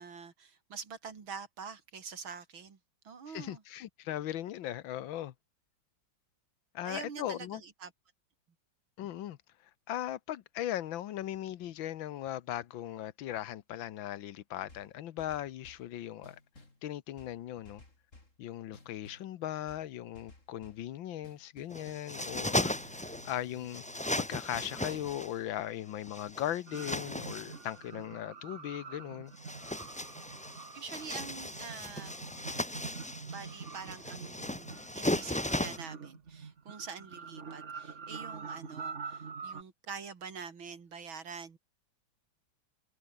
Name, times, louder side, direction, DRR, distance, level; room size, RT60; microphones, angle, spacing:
voice 1, 0.0-2.8 3.0-3.6 6.8-7.9 30.7-32.2 33.2-41.6, right 5 dB, 85° right, 3.4 m, -45 dB
voice 2, 3.3-5.3 6.7-7.6 9.0-9.4 9.9-16.4 16.8-17.8 18.4-23.8 24.2-29.3, left 12 dB, 80° left, 1.7 m, -38 dB
sound 1, 14.7-15.9 16.2-16.8 17.2-18.4 18.7-19.3 19.7-20.9 21.2-25.2, left 2 dB, 40° left, 5.0 m, -56 dB
sound 2, 21.7-23.4 23.7-25.3 26.0-27.6 29.3-35.8, left 1 dB, 10° left, 0.3 m, -36 dB
sound 3, 26.7-39.6, right 5 dB, 40° right, 1.8 m, -46 dB
omnidirectional pair, 2.1 m